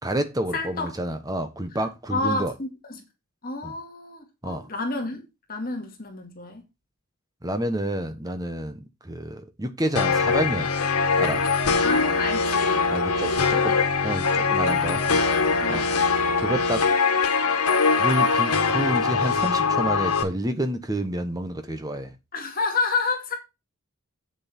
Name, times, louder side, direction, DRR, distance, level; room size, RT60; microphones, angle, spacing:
voice 1, 0.0-2.5 3.6-3.7 4.4-4.7 7.4-10.7 11.2-11.4 12.9-13.7 14.0-15.0 15.7-15.9 16.4-16.9 18.0-22.1, right 1 dB, 15° right, 1.1 m, -29 dB
voice 2, 0.5-0.9 1.7-1.8 2.1-3.0 3.4-6.6 11.8-12.8 13.3-13.8 15.6-16.1 22.3-23.4, left 3 dB, 40° left, 2.1 m, -30 dB
sound 1, 10.0-20.2, left 4 dB, 90° left, 1.6 m, -22 dB
8.1 x 6.8 x 4.4 m
head